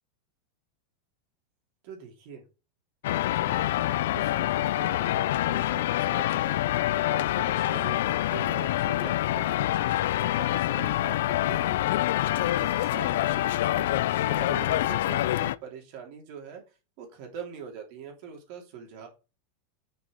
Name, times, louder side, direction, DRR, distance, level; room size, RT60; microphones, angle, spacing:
voice 1, 1.8-2.4 3.2-19.1, right 7 dB, 40° right, 2 dB, 3.1 m, -43 dB
sound 1, 3.0-15.6, left 14 dB, 65° left, 0.5 m, -26 dB
6.9 x 6.6 x 6.5 m, 0.31 s
supercardioid pair, 175°, 0 cm